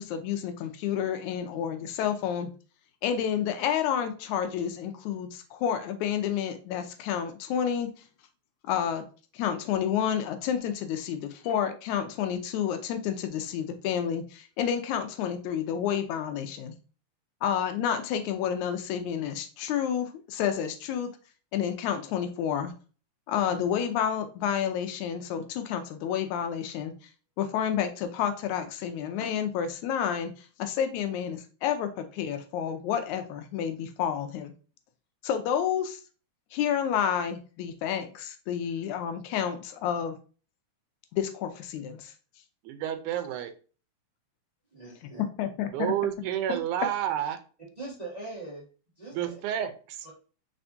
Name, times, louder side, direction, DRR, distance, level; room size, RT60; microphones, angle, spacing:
voice 1, 0.0-2.5 3.0-7.9 8.6-9.1 9.3-16.7 17.4-21.1 21.5-22.7 23.3-26.9 27.4-34.5 35.2-36.0 36.5-40.2 41.1-42.1 45.4-45.7, left 9 dB, 80° left, 8 dB, 1.8 m, -30 dB
voice 2, 42.6-43.5 45.7-47.4 49.1-50.1, right 10 dB, 85° right, 8 dB, 2.1 m, -30 dB
voice 3, 44.7-45.2 46.5-46.6 47.8-48.6 49.0-49.4 50.0-50.1, right 3 dB, 35° right, -6 dB, 0.6 m, -41 dB
4.5 x 4.2 x 2.6 m, 0.37 s
omnidirectional pair, 3.5 m